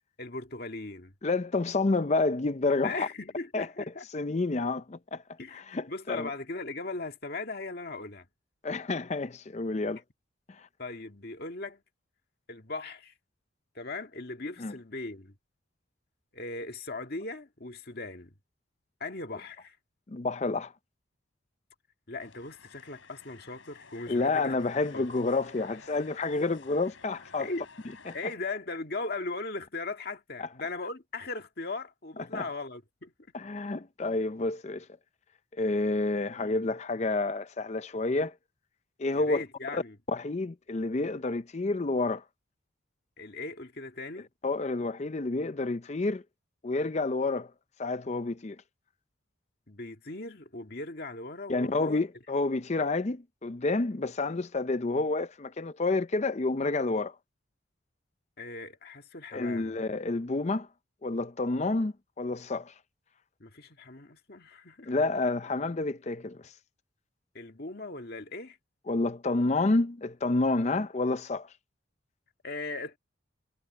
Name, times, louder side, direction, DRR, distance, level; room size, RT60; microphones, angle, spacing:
voice 1, 0.2-1.1 2.8-4.1 5.4-5.6 5.9-8.3 10.8-11.8 12.5-13.1 13.8-15.3 16.3-18.4 19.0-19.8 22.1-24.6 24.9-25.1 27.4-27.7 28.1-33.1 36.4-36.6 39.1-40.0 43.2-44.3 49.7-52.0 58.4-59.8 63.4-64.9 67.3-68.6 72.4-73.0, left 3 dB, 50° left, 2.0 m, -38 dB
voice 2, 1.2-3.1 3.5-3.7 4.1-5.2 5.5-6.3 8.6-10.0 10.6-10.7 14.6-14.7 20.1-20.7 24.1-27.5 28.1-28.2 30.4-30.5 32.3-32.5 33.3-34.9 35.6-38.3 39.0-39.4 39.7-39.8 40.1-42.2 44.4-46.2 46.6-47.5 47.8-48.6 51.5-57.1 59.3-60.7 61.0-62.7 64.9-66.5 68.9-71.5, left 3 dB, 35° left, 0.5 m, -29 dB
sound 1, 22.2-28.3, left 4 dB, 75° left, 5.8 m, -53 dB
head